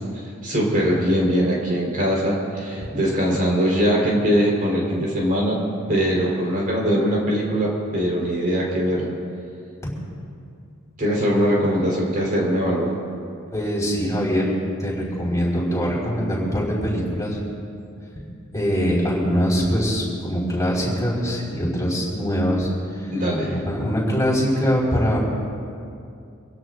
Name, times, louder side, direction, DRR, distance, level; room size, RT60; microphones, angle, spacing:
voice 1, 0.4-5.6 5.9-9.2 11.0-12.9 23.1-23.6, equal, 45° right, -4 dB, 4.2 m, -21 dB
voice 2, 13.5-14.5 14.8-17.4 18.5-25.2, equal, 15° left, -5 dB, 4.8 m, -23 dB
26.5 x 17.0 x 2.6 m, 2.5 s
head